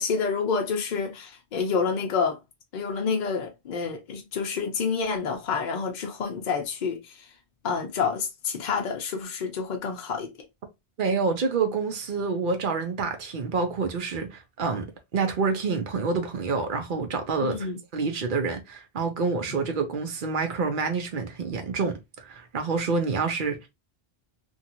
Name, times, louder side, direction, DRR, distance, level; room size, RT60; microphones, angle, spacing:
voice 1, 0.0-2.4 2.7-7.0 7.6-10.3 17.4-17.8 19.5-19.6, left 5 dB, 55° left, 0.6 m, -28 dB
voice 2, 11.0-14.9 15.1-23.7, right 4 dB, 55° right, 0.8 m, -27 dB
2.7 x 2.4 x 2.8 m
omnidirectional pair, 1.0 m